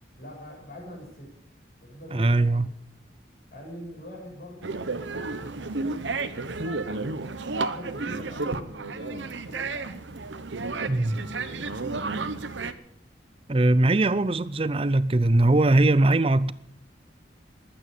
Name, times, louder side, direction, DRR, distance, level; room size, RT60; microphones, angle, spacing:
voice 1, 0.2-1.4 1.8-2.6 3.5-6.2 6.6-10.0 10.6-12.1, left 1 dB, 50° left, 7.5 m, -44 dB
voice 2, 2.1-2.7 10.9-11.2 13.5-16.5, right 2 dB, 30° right, 0.5 m, -21 dB
sound 1, 4.6-12.7, right 3 dB, 90° right, 1.0 m, -32 dB
21.0 x 9.1 x 7.1 m
head